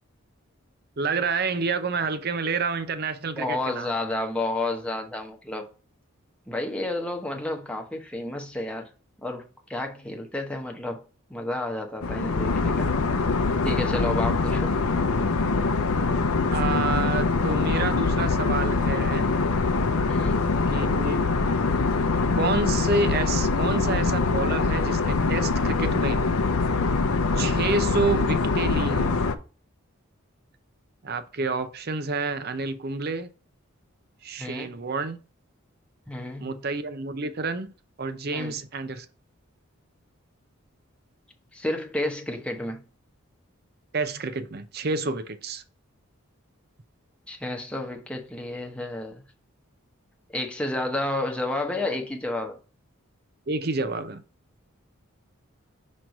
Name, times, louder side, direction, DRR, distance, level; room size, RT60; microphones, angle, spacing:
voice 1, 1.0-3.9 16.5-19.3 20.7-21.3 22.4-26.2 27.3-29.1 31.0-33.3 34.2-35.2 36.4-37.7 38.0-39.1 43.9-45.6 53.5-54.2, right 3 dB, 45° right, 0.6 m, -29 dB
voice 2, 3.4-5.7 6.5-8.9 9.2-11.0 11.3-12.9 13.6-14.8 20.1-20.5 34.4-34.8 36.1-36.6 38.3-38.5 41.5-42.8 47.3-49.2 50.3-52.6, left 2 dB, 5° left, 0.9 m, -31 dB
sound 1, 12.0-29.4, left 3 dB, 80° left, 0.6 m, -24 dB
6.0 x 3.2 x 5.2 m
head